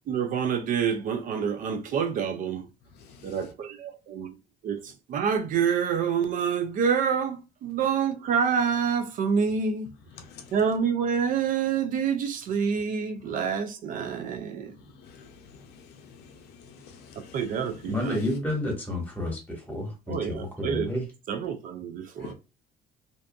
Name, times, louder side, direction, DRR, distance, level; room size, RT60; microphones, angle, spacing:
voice 1, 0.1-2.6 3.2-4.4 4.6-9.9 10.5-14.7 17.3-18.2 20.1-20.9 21.3-22.3, right 7 dB, 55° right, 0.4 m, -27 dB
voice 2, 10.1-10.5 15.0-17.4 22.2-22.3, left 5 dB, 75° left, 0.5 m, -47 dB
voice 3, 17.9-21.0, left 1 dB, 10° left, 1.3 m, -30 dB
2.6 x 2.4 x 2.2 m
cardioid pair, 110°, 17 cm